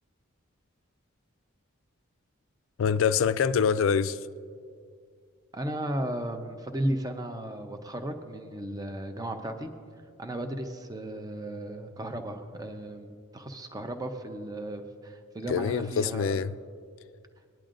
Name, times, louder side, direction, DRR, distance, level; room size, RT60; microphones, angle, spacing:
voice 1, 2.8-4.2 15.5-16.5, left 6 dB, 65° left, 0.3 m, -25 dB
voice 2, 5.5-9.7 10.2-16.4, right 1 dB, 20° right, 0.7 m, -35 dB
19.0 x 10.5 x 2.5 m
head